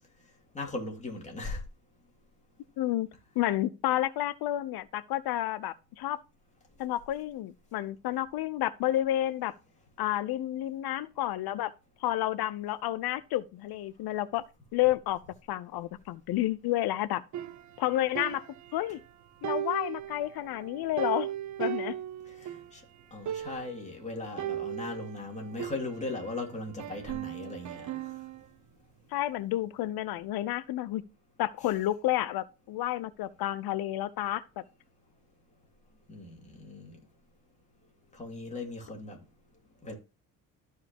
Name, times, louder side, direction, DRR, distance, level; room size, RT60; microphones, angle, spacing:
voice 1, 0.5-1.6 22.3-22.8 23.1-27.9 36.1-36.9 38.1-39.2 39.8-40.0, left 2 dB, 20° left, 2.5 m, -38 dB
voice 2, 2.8-3.1 3.4-6.2 6.8-9.5 10.0-11.7 12.0-14.4 14.7-15.2 15.5-17.2 17.8-18.4 18.7-19.0 19.4-21.3 21.6-22.0 29.1-31.0 31.4-34.4, left 14 dB, 80° left, 0.7 m, -30 dB
sound 1, 17.3-19.1 19.4-22.7 23.0-23.1 23.3-23.9 24.4-26.4 26.8-28.5, right 11 dB, 50° right, 0.8 m, -37 dB
13.5 x 4.7 x 2.9 m
cardioid pair, 125°, 36 cm